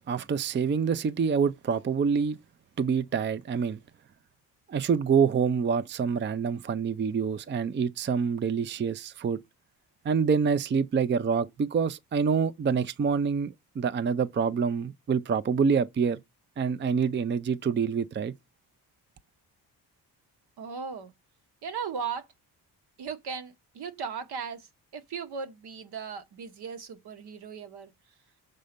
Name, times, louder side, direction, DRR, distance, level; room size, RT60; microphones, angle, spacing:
voice 1, 0.1-2.4 2.8-3.8 4.7-9.4 10.0-16.2 16.6-18.3, right 6 dB, 30° right, 0.5 m, -26 dB
voice 2, 20.6-21.1 21.6-22.3 23.0-24.7 24.9-27.9, right 6 dB, 75° right, 1.4 m, -37 dB
6.6 x 4.1 x 5.1 m
cardioid pair, 90°, 39 cm